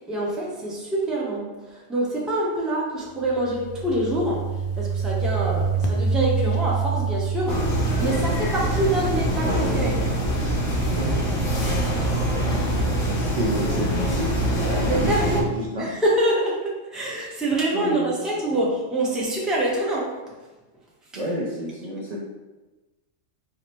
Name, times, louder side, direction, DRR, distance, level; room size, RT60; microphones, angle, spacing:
voice 1, 0.1-4.5 4.8-10.0 14.8-15.5 15.8-20.1, right 1 dB, ahead, -5 dB, 0.6 m, -25 dB
sound 1, 3.2-8.8, right 5 dB, 55° left, 0.6 m, -27 dB
sound 2, 7.5-15.4, right 1 dB, 75° left, 1.3 m, -24 dB
voice 2, 12.3-15.9 17.7-18.7 21.1-22.2, equal, 45° right, -4 dB, 0.5 m, -31 dB
4.8 x 2.1 x 4.4 m, 1.1 s
omnidirectional pair, 1.3 m